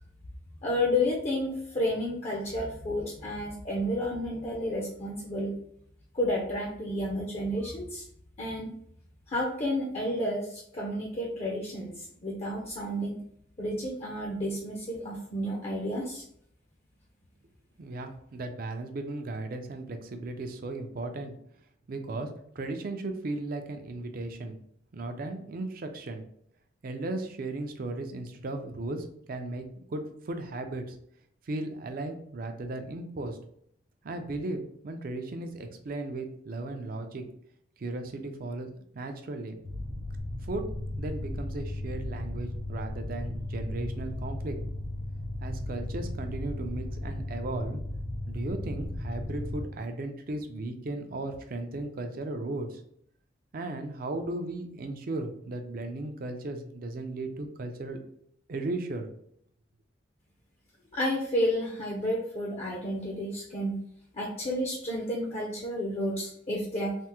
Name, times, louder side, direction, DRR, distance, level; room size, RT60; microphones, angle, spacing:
voice 1, 0.6-5.5 6.1-8.0 8.4-8.7 9.3-13.2 13.6-16.2 60.9-63.8 64.1-67.0, left 1 dB, 35° left, -2 dB, 0.5 m, -31 dB
voice 2, 17.8-21.3 21.9-22.3 22.6-24.6 24.9-26.2 26.8-29.6 29.9-30.9 31.5-33.4 34.0-37.2 37.8-38.7 38.9-39.6 40.4-44.6 45.4-47.8 48.3-52.8 53.5-58.0 58.5-59.1, right 2 dB, 50° right, 6 dB, 0.4 m, -36 dB
sound 1, 39.6-49.6, left 1 dB, 70° right, 1.0 m, -35 dB
3.4 x 2.0 x 2.8 m, 0.67 s
head